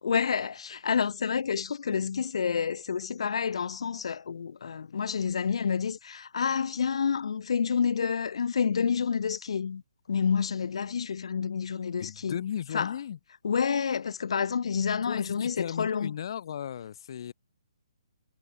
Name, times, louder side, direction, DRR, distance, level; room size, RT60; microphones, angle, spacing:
voice 1, 0.0-9.8 10.1-12.4 12.7-12.9 13.4-16.1, left 6 dB, 65° left, 3.3 m, -29 dB
voice 2, 12.0-13.2 15.1-17.3, left 9 dB, 50° left, 6.3 m, -35 dB
hypercardioid pair, 155°, 3 cm